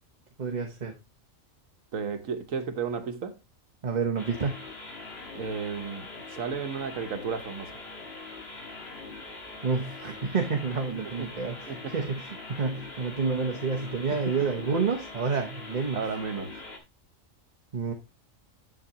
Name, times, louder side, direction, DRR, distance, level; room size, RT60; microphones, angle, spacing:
voice 1, 0.4-1.0 3.8-4.6 9.6-16.0 17.7-17.9, right 5 dB, 35° right, 0.9 m, -29 dB
voice 2, 1.9-3.4 5.3-7.7 11.2-12.0 14.1-14.7 15.9-16.5, right 5 dB, 75° right, 1.4 m, -34 dB
sound 1, 4.2-16.8, left 3 dB, 50° left, 2.0 m, -42 dB
8.0 x 7.5 x 2.8 m
omnidirectional pair, 1.4 m